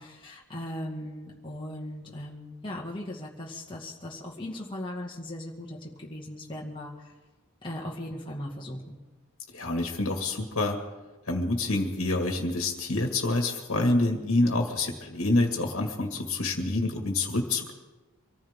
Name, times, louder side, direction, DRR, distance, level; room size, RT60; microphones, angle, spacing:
voice 1, 0.0-7.1 7.6-9.0, left 1 dB, 20° left, -3 dB, 1.9 m, -38 dB
voice 2, 9.5-10.8 11.3-17.7, left 2 dB, 70° left, 1 dB, 2.0 m, -27 dB
25.0 x 14.5 x 3.7 m, 1.2 s
head